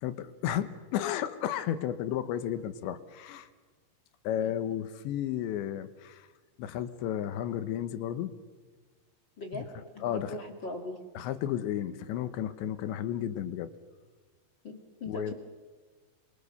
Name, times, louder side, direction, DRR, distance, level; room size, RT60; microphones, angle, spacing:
voice 1, 0.0-3.5 4.2-6.3 6.6-8.3 9.5-9.7 10.0-10.4 11.1-13.7 15.1-15.3, left 11 dB, 80° left, 11 dB, 3.3 m, -33 dB
voice 2, 9.9-11.0 14.6-15.3, left 2 dB, 40° left, 4 dB, 1.7 m, -40 dB
28.0 x 24.5 x 6.9 m, 1.4 s
omnidirectional pair, 5.3 m